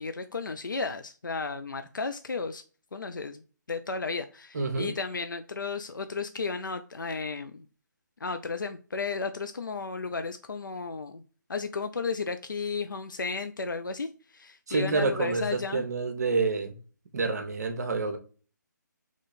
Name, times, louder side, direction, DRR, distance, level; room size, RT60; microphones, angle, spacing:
voice 1, 0.0-2.6 2.9-3.4 3.7-7.7 8.2-11.2 11.5-15.8, left 4 dB, 80° left, 0.4 m, -34 dB
voice 2, 4.5-5.0 14.7-16.8 17.1-18.2, right 3 dB, 55° right, 0.9 m, -28 dB
4.0 x 3.1 x 4.0 m
figure-of-eight pair, 145°, 10 cm